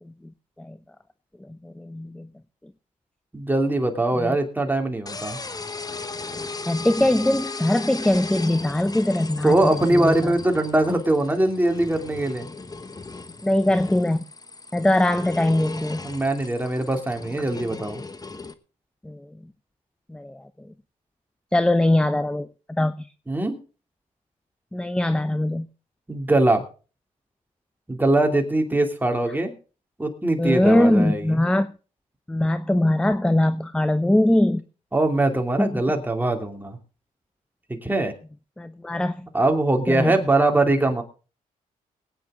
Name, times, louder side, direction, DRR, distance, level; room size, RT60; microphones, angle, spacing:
voice 1, 1.5-2.3 4.2-4.4 6.7-10.3 13.4-14.2 14.7-16.0 19.0-19.2 20.1-20.4 21.5-23.1 24.7-25.7 30.4-31.7 32.3-34.6 35.6-35.8 38.6-39.3 39.9-40.2, left 1 dB, 5° left, 13 dB, 0.7 m, -21 dB
voice 2, 3.3-5.4 9.4-12.5 16.0-18.0 23.3-23.6 26.1-26.6 27.9-29.5 30.0-31.4 34.9-36.8 37.7-38.1 39.3-41.0, right 2 dB, 10° right, 4 dB, 2.9 m, -22 dB
sound 1, 5.1-18.5, left 3 dB, 25° left, 1.1 m, -37 dB
21.5 x 9.2 x 3.8 m, 0.36 s
cardioid pair, 70°, 15 cm